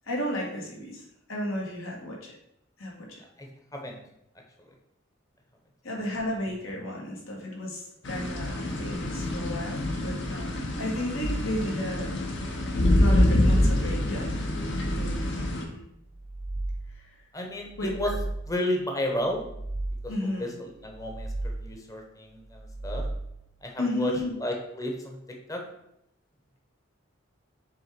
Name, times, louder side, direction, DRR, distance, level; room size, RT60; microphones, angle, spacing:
voice 1, 0.1-2.4 2.8-3.2 5.8-12.2 12.9-14.3 14.9-15.8 16.9-17.1 17.8-17.9 20.1-20.5 23.8-24.3, left 1 dB, 75° left, -2 dB, 2.1 m, -33 dB
voice 2, 3.4-4.0 17.3-18.1 18.5-19.5 20.0-23.0 23.6-24.1 24.4-25.2 25.5-25.6, left 1 dB, 15° left, 2 dB, 1.0 m, -32 dB
sound 1, 8.0-15.6, left 1 dB, 60° left, 1.2 m, -26 dB
sound 2, 14.5-15.6 16.1-17.2 17.7-18.7 19.3-20.4 20.8-21.9 22.5-23.6, right 2 dB, 40° right, 0.6 m, -36 dB
6.9 x 3.7 x 5.2 m, 0.80 s
head